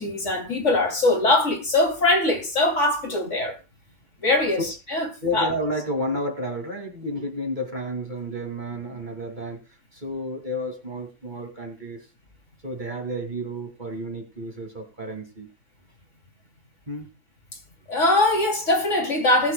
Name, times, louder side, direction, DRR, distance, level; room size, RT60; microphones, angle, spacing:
voice 1, 0.0-3.6 4.2-5.1 5.3-5.5 17.9-19.5, left 2 dB, 50° left, 3.3 m, -22 dB
voice 2, 5.2-12.1 12.6-15.5 16.9-17.1, equal, 30° right, 2.8 m, -31 dB
19.5 x 8.0 x 2.3 m
omnidirectional pair, 1.6 m